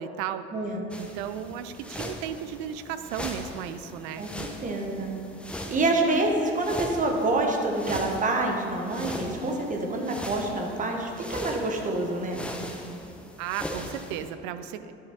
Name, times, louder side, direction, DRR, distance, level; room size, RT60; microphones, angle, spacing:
voice 1, 0.0-0.5 1.0-4.3 13.4-14.9, right 9 dB, 50° right, 12 dB, 0.5 m, -35 dB
voice 2, 0.5-0.8 4.2-5.2 5.7-12.4, right 2 dB, 25° right, 2 dB, 1.1 m, -27 dB
sound 1, 0.9-14.3, left 1 dB, 5° left, 0.7 m, -40 dB
10.5 x 5.8 x 2.9 m, 2.8 s
figure-of-eight pair, 65°, 33 cm